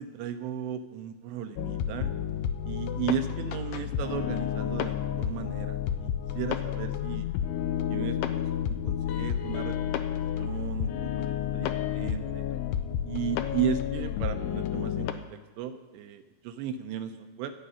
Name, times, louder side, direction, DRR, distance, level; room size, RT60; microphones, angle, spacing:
voice 1, 0.0-2.1 2.7-7.3 7.9-12.5 13.1-17.5, right 8 dB, 80° right, 8 dB, 2.6 m, -35 dB
sound 1, 1.6-15.1, left 9 dB, 85° left, 2.3 m, -31 dB
25.0 x 8.6 x 5.6 m, 1.2 s
omnidirectional pair, 5.6 m